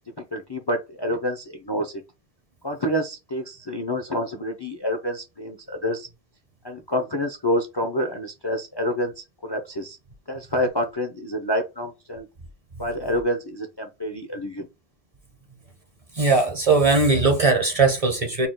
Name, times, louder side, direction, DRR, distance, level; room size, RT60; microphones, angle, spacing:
voice 1, 0.2-1.9 2.6-6.1 6.6-10.0 10.3-12.3 12.8-14.7, equal, 30° left, 0.5 m, -28 dB
voice 2, 16.1-18.5, right 3 dB, 35° right, 0.8 m, -19 dB
4.2 x 2.3 x 3.6 m
omnidirectional pair, 1.1 m